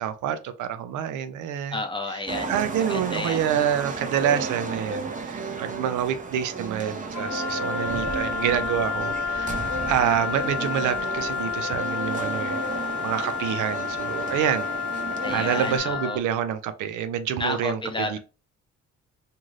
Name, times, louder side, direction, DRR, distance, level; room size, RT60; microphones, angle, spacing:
voice 1, 0.0-1.8 2.1-9.5 9.9-12.6 13.0-14.7 15.3-18.2, right 9 dB, 80° right, 0.5 m, -27 dB
voice 2, 1.7-3.4 15.2-16.2 17.4-18.2, left 2 dB, 15° left, 0.6 m, -32 dB
sound 1, 2.3-15.8, right 4 dB, 25° right, 0.6 m, -33 dB
Wind instrument woodwind instrument, 7.1-16.2, left 6 dB, 65° left, 0.6 m, -30 dB
2.6 x 2.4 x 3.1 m
cardioid pair, 90°, 30 cm